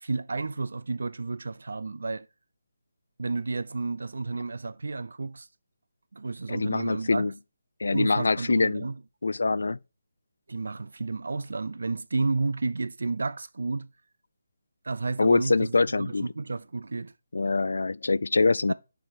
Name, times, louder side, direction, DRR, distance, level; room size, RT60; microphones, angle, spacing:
voice 1, 0.0-2.3 3.2-5.5 6.1-7.3 7.9-9.0 10.5-13.9 14.8-17.1 18.7-18.8, right 3 dB, 75° right, 0.5 m, -31 dB
voice 2, 6.5-7.3 7.8-8.9 9.2-9.8 15.2-16.3 17.3-18.7, left 3 dB, 80° left, 0.3 m, -24 dB
6.5 x 4.8 x 4.4 m
hypercardioid pair, 170°, 0 cm